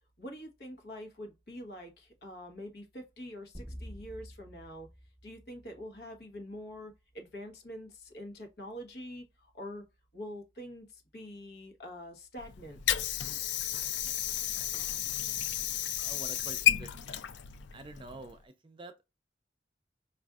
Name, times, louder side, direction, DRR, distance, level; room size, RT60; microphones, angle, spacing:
voice 1, 0.2-4.9 5.2-9.8 10.1-13.0, equal, 60° left, 1.1 m, -45 dB
sound 1, 3.5-6.2, equal, 20° left, 1.6 m, -48 dB
Water / Sink (filling or washing), 12.4-18.4, left 11 dB, 90° left, 0.4 m, -32 dB
voice 2, 16.0-17.3 17.7-18.9, right 2 dB, 30° right, 0.4 m, -48 dB
5.0 x 2.5 x 2.3 m
head